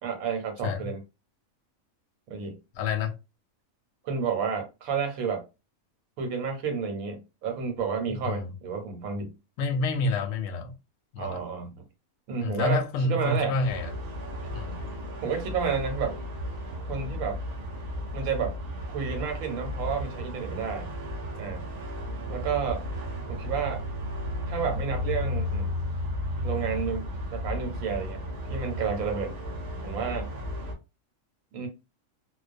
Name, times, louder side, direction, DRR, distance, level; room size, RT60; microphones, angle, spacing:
voice 1, 0.0-1.0 2.3-2.6 4.0-5.4 6.2-9.3 11.2-11.8 12.3-13.5 15.2-16.2 16.9-17.4 18.1-18.6 18.9-20.9 21.4-21.7 22.3-22.8 23.3-23.8 24.5-25.7 26.4-28.2 28.5-29.3 29.8-30.3 31.5-31.7, right 6 dB, 85° right, 1.1 m, -31 dB
voice 2, 2.7-3.1 8.1-8.5 9.6-10.7 11.1-11.4 12.4-13.9 14.5-14.8, left 3 dB, 65° left, 0.8 m, -28 dB
sound 1, 13.6-30.7, left 1 dB, 65° right, 0.4 m, -34 dB
2.2 x 2.2 x 2.4 m
omnidirectional pair, 1.4 m